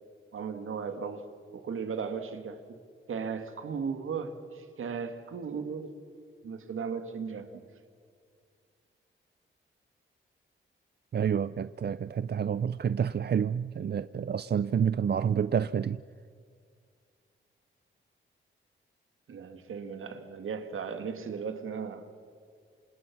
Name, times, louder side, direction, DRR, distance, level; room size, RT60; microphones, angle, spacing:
voice 1, 0.3-1.3 1.5-2.8 3.1-6.0 6.4-7.6 19.3-22.1, right 6 dB, 75° right, 8 dB, 2.3 m, -36 dB
voice 2, 11.1-16.0, right 8 dB, 50° right, 15 dB, 0.6 m, -28 dB
28.0 x 27.0 x 6.2 m, 2.1 s
cardioid pair, 75°, 21 cm